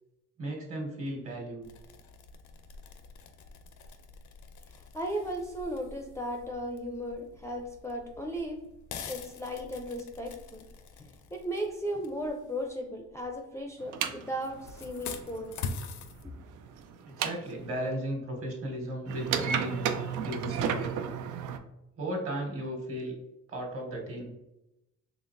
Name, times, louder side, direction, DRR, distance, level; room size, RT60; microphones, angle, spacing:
voice 1, 0.4-1.7 17.0-20.0 20.2-21.0 22.0-23.1 23.5-24.3, right 1 dB, 50° right, 0 dB, 1.5 m, -35 dB
sound 1, 1.6-13.6 14.3-16.2, left 5 dB, 75° left, 0.6 m, -45 dB
voice 2, 4.9-8.6 9.1-10.6 11.0-15.5, equal, 10° left, 3 dB, 0.4 m, -36 dB
sound 2, 13.8-17.9 19.1-21.6, right 7 dB, 90° right, 0.5 m, -33 dB
4.4 x 3.0 x 2.6 m, 0.89 s
cardioid pair, 90°, 30 cm